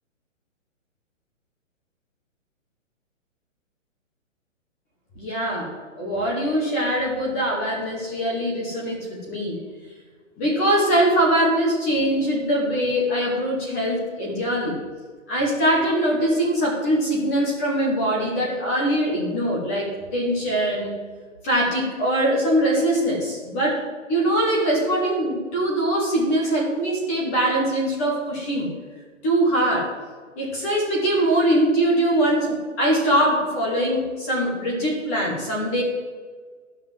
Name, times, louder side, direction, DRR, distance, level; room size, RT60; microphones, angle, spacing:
voice 1, 5.2-9.6 10.4-14.8 15.3-21.0 21.4-23.8 24.1-28.7 29.2-29.9 30.4-35.8, right 1 dB, 10° left, -3 dB, 1.0 m, -22 dB
12.0 x 5.8 x 7.4 m, 1.5 s
hypercardioid pair, 175°, 39 cm